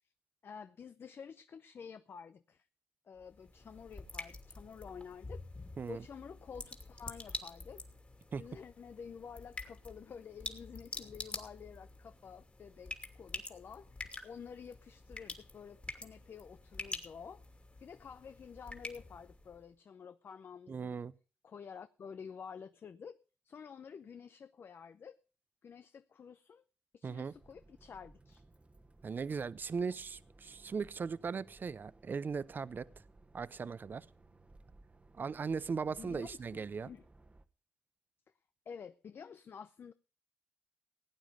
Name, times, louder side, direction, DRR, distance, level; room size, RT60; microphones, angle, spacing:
voice 1, 0.4-2.7 3.1-5.4 5.9-7.8 8.4-17.4 17.8-21.0 21.4-23.2 23.4-25.2 25.6-26.6 26.9-28.4 35.9-37.1 38.7-39.9, left 6 dB, 60° left, 0.6 m, -50 dB
sound 1, 3.2-19.6, left 2 dB, 30° left, 2.7 m, -47 dB
voice 2, 20.7-21.1 27.0-27.3 29.0-32.9 33.3-34.1 35.2-36.9, right 5 dB, 50° right, 0.6 m, -38 dB
sound 2, 27.3-37.4, right 2 dB, 30° right, 1.2 m, -61 dB
17.0 x 9.2 x 5.2 m
supercardioid pair, 50°, 4 cm